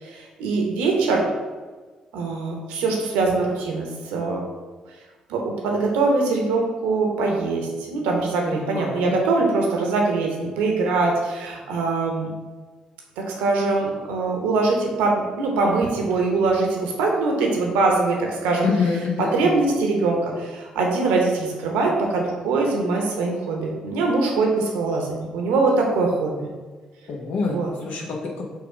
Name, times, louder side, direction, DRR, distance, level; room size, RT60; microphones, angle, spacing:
voice 1, 0.0-1.2 2.1-4.4 5.3-12.3 13.2-18.7 19.2-26.5 27.5-27.7, right 3 dB, 85° right, 0 dB, 0.8 m, -22 dB
voice 2, 8.5-9.1 18.6-19.5 27.1-28.5, left 5 dB, 65° left, 0 dB, 0.9 m, -26 dB
4.6 x 2.4 x 4.7 m, 1.3 s
hypercardioid pair, 55°, 2 cm